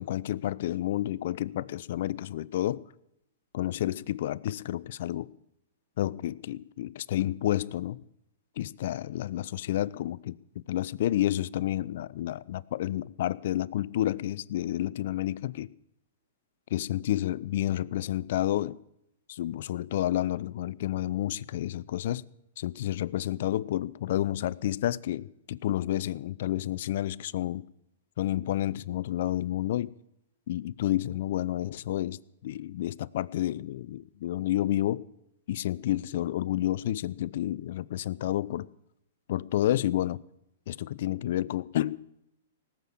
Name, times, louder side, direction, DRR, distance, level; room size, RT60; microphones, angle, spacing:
voice 1, 0.0-2.9 3.5-5.3 6.0-8.0 8.6-10.4 10.7-15.7 16.7-18.8 19.3-22.2 22.6-27.6 28.2-29.9 30.5-35.0 35.5-38.7 39.3-40.2 40.7-42.0, left 13 dB, 60° left, 0.5 m, -30 dB
18.0 x 7.4 x 8.6 m
hypercardioid pair, 130°, 0 cm